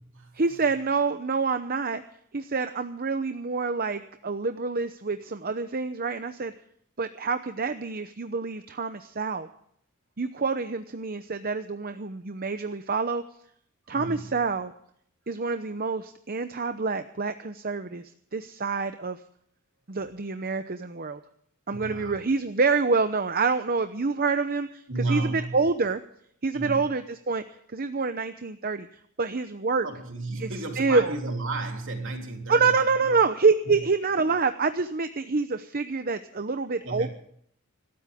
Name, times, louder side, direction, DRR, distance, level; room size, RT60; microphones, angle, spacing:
voice 1, 0.3-2.0 2.3-6.5 7.0-9.5 10.2-13.2 13.9-14.7 15.3-19.2 19.9-21.2 21.7-26.0 26.4-27.4 27.7-29.9 30.4-30.5 30.8-31.1 32.5-37.1, right 4 dB, 45° right, 9 dB, 0.8 m, -27 dB
voice 2, 13.9-14.3 21.7-22.1 24.9-25.6 26.5-26.8 29.8-32.8 33.0-33.1 33.7-33.8 36.8-37.1, right 2 dB, 60° right, 3 dB, 3.4 m, -32 dB
25.5 x 13.5 x 3.6 m, 0.67 s
head